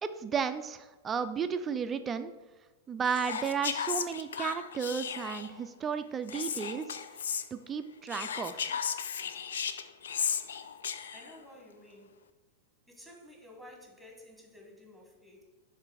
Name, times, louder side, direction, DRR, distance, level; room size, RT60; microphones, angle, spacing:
voice 1, 0.0-2.3 2.9-7.0 7.5-8.8, right 6 dB, 20° right, 10 dB, 0.3 m, -33 dB
Whispering, 3.0-5.6 6.3-7.5 8.1-11.4, left 7 dB, 65° left, 0.3 m, -35 dB
voice 2, 11.0-12.2 12.9-15.5, left 1 dB, 5° left, 1 dB, 1.4 m, -53 dB
7.3 x 3.2 x 5.0 m, 1.2 s
figure-of-eight pair, 95°, 0 cm